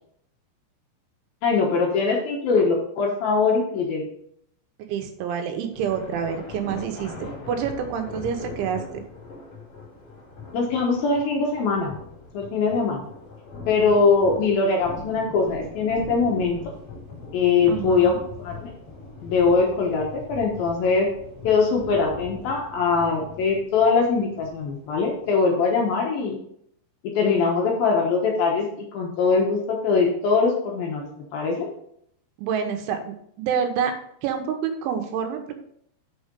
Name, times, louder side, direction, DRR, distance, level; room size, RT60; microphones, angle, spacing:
voice 1, 1.4-4.1 10.5-12.0 12.3-13.0 13.7-16.6 17.3-18.1 18.4-18.7 19.2-21.1 21.4-26.4 27.1-28.7 28.9-31.7, left 4 dB, 70° left, 0 dB, 2.4 m, -22 dB
voice 2, 4.9-9.0 17.7-18.2 32.4-33.9 34.2-35.5, right 7 dB, 85° right, 6 dB, 3.4 m, -28 dB
sound 1, 5.7-25.3, left 3 dB, 40° left, 3.1 m, -41 dB
6.9 x 6.5 x 5.3 m, 0.70 s
omnidirectional pair, 5.3 m